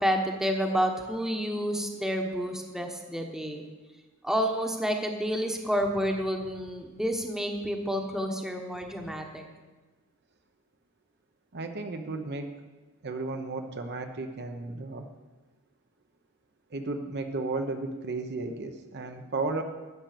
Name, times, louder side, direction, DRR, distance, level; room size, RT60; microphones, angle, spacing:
voice 1, 0.0-3.7 4.2-9.4, equal, ahead, 3 dB, 1.1 m, -29 dB
voice 2, 11.5-12.5 13.0-15.1 16.7-19.6, right 3 dB, 55° right, 6 dB, 1.0 m, -34 dB
12.0 x 8.0 x 6.7 m, 1.2 s
head